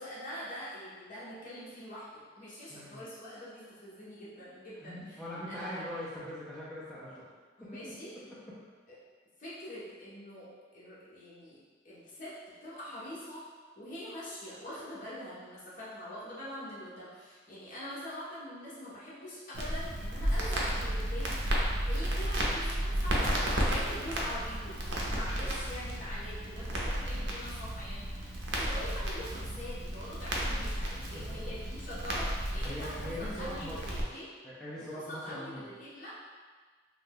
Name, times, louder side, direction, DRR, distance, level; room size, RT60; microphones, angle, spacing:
voice 1, 0.0-5.2 5.5-6.0 7.6-8.1 8.9-9.0 9.4-11.6 11.8-13.4 13.8-21.4 21.9-28.1 28.4-34.3 34.8-36.3, equal, 45° left, -8 dB, 0.9 m, -44 dB
voice 2, 2.7-3.0 4.8-7.2 7.6-7.8 30.5-30.7 31.1-31.2 32.6-33.8 34.4-35.7, equal, 5° left, -9 dB, 0.4 m, -41 dB
Crackle, 19.5-34.0, right 1 dB, 75° right, 0.5 m, -33 dB
2.5 x 2.2 x 3.4 m, 1.5 s
head